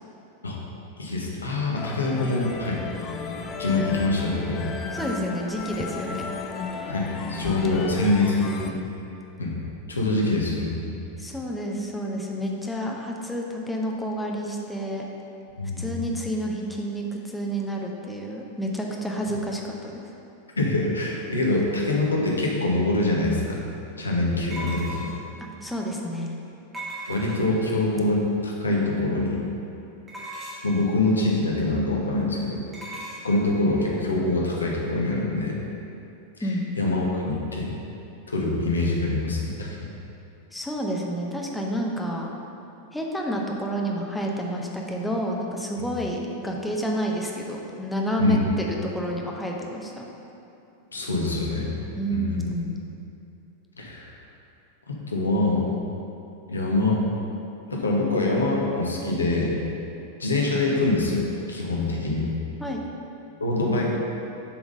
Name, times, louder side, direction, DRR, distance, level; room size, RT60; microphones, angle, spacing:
voice 1, 1.0-2.8 3.6-4.6 6.9-8.8 9.4-9.6 9.9-11.0 15.6-15.9 20.6-23.6 24.0-25.1 27.1-29.4 30.6-32.7 33.2-35.5 36.8-37.7 38.3-39.9 48.2-48.4 50.9-51.8 52.1-52.4 53.8-54.1 54.9-55.7 56.5-57.0 57.7-59.6 60.2-62.3 63.4-63.9, left 2 dB, 75° left, -2 dB, 1.0 m, -24 dB
sound 1, 1.8-8.7, left 5 dB, 30° left, 0.4 m, -34 dB
voice 2, 4.9-6.2 11.2-15.1 15.8-20.0 25.6-26.3 36.4-36.7 40.5-42.3 42.9-50.1 52.0-52.8 62.6-62.8, equal, 5° left, -1 dB, 0.8 m, -29 dB
sound 2, 22.9-23.0 24.5-25.3 26.7-27.6 30.1-30.8 32.7-33.3, right 1 dB, 15° right, 1.5 m, -37 dB
7.0 x 3.7 x 5.2 m, 2.8 s
figure-of-eight pair, 90°, 0 cm